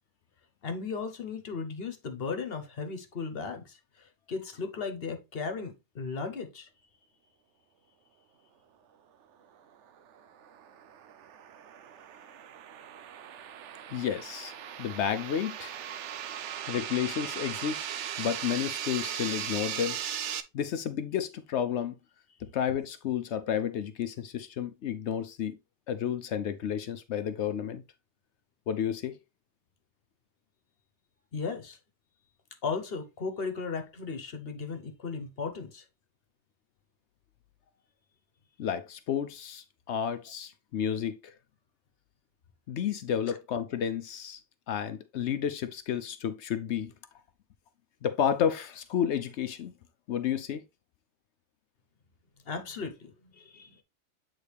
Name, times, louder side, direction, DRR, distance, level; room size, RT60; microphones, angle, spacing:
voice 1, 0.6-6.7 31.3-31.8 32.6-35.8 43.3-43.4 52.4-53.8, left 5 dB, 60° left, 1.3 m, -36 dB
sound 1, 10.0-20.4, right 9 dB, 85° right, 1.0 m, -38 dB
voice 2, 13.9-14.5 14.8-15.8 16.7-20.0 20.5-22.0 22.4-25.6 25.9-27.8 28.7-29.2 38.6-41.3 42.7-44.4 44.7-46.9 48.0-49.7 50.1-50.6, left 8 dB, 75° left, 0.9 m, -31 dB
8.3 x 3.9 x 3.3 m
omnidirectional pair, 1.2 m